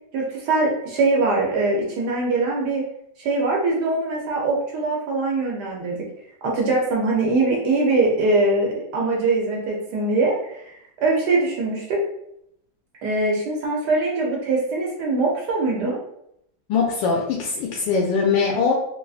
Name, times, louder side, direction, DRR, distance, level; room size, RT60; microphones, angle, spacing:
voice 1, 0.1-2.8 3.2-6.0 6.4-12.0 13.0-16.0, right 3 dB, 70° right, -2 dB, 1.2 m, -22 dB
voice 2, 16.7-18.7, left 5 dB, 80° left, -2 dB, 1.3 m, -21 dB
3.8 x 2.4 x 2.4 m, 0.75 s
omnidirectional pair, 2.1 m